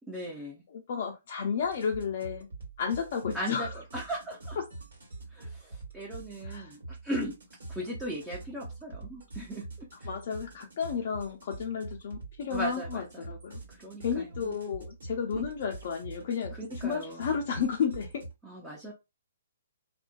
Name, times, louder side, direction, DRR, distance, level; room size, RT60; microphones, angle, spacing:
voice 1, 0.1-0.6 3.3-4.6 5.3-7.3 7.7-10.1 12.5-13.2 13.7-14.6 15.3-15.4 16.5-17.2 18.4-18.9, equal, 10° right, 0.5 m, -38 dB
voice 2, 0.7-2.5 2.8-3.7 6.4-6.7 10.0-13.6 14.0-16.6 16.8-18.2, left 6 dB, 50° left, 0.4 m, -32 dB
sound 1, 1.6-18.3, right 2 dB, 70° right, 1.4 m, -45 dB
2.5 x 2.1 x 2.3 m
figure-of-eight pair, 125°, 0 cm